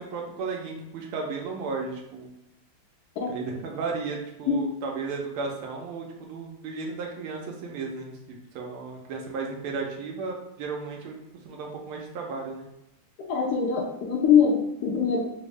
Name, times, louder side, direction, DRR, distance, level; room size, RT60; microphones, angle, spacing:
voice 1, 0.0-2.3 3.2-11.2 11.4-12.7, right 4 dB, 85° right, 0 dB, 1.5 m, -34 dB
voice 2, 13.2-15.2, left 7 dB, 80° left, -1 dB, 0.8 m, -23 dB
4.0 x 2.0 x 3.4 m, 0.83 s
omnidirectional pair, 2.3 m